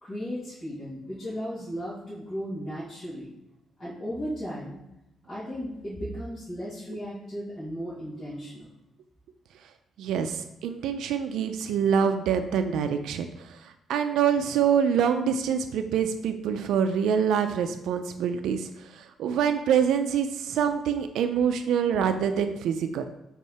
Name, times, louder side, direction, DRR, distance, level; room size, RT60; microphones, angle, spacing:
voice 1, 0.0-3.3 3.8-4.8 5.3-8.7, equal, 25° left, -11 dB, 2.3 m, -35 dB
voice 2, 10.0-23.0, right 7 dB, 85° right, 8 dB, 0.5 m, -26 dB
7.2 x 3.7 x 4.2 m, 0.90 s
cardioid pair, 130°, 0 cm